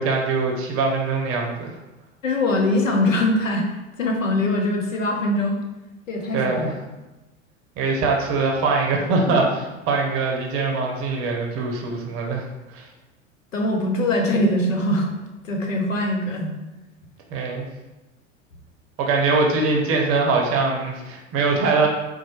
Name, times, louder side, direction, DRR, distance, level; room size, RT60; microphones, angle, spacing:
voice 1, 0.0-1.7 6.3-6.7 7.8-12.5 12.7-12.8 17.3-17.7 19.0-21.9, right 3 dB, 35° right, 0 dB, 0.7 m, -22 dB
voice 2, 2.2-3.7 4.0-5.6 6.1-6.7 13.5-15.1 15.4-16.6, left 1 dB, 80° left, 2 dB, 0.7 m, -22 dB
4.1 x 2.2 x 2.9 m, 1.1 s
figure-of-eight pair, 80°, 38 cm